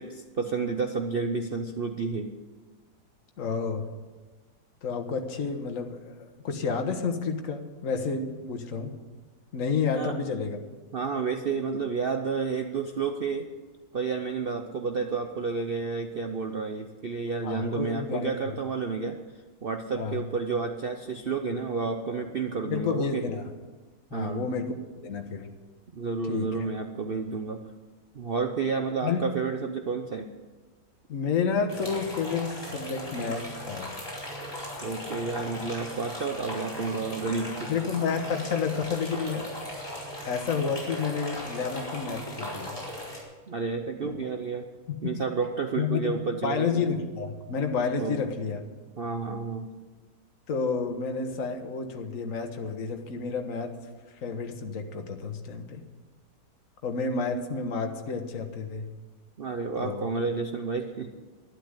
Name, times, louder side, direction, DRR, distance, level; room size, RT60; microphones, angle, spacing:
voice 1, 0.0-2.3 9.9-10.2 10.9-13.5 13.9-19.2 19.6-23.2 24.1-24.4 25.9-27.6 28.1-30.3 34.8-37.7 43.5-44.7 45.0-46.8 48.0-48.2 49.0-49.7 59.4-61.1, right 4 dB, 50° right, 5 dB, 0.7 m, -30 dB
voice 2, 3.4-3.9 4.8-8.9 9.5-10.6 17.4-18.6 19.9-20.2 22.6-23.5 24.1-24.7 25.0-25.5 26.3-26.7 29.0-29.2 31.1-33.9 37.7-39.4 40.2-42.8 44.0-44.1 44.9-45.0 45.8-48.6 50.5-53.8 54.2-55.8 56.8-58.9 59.8-60.1, left 5 dB, 50° left, 5 dB, 1.6 m, -30 dB
sound 1, 31.7-43.2, left 1 dB, 15° left, 4.3 m, -38 dB
12.0 x 11.5 x 8.1 m, 1.3 s
omnidirectional pair, 1.9 m